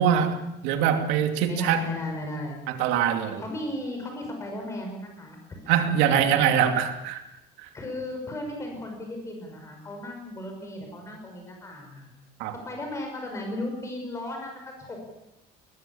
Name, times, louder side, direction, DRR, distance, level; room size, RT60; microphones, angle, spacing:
voice 1, 0.0-1.8 2.7-3.4 5.7-7.2 7.6-7.7 12.4-12.5, right 8 dB, 80° right, 6 dB, 2.7 m, -23 dB
voice 2, 1.5-2.6 3.4-5.6 6.0-6.1 7.7-12.1 12.7-15.0, left 1 dB, 15° left, 2 dB, 5.5 m, -36 dB
21.5 x 20.5 x 7.2 m, 0.89 s
cardioid pair, 180°, 18 cm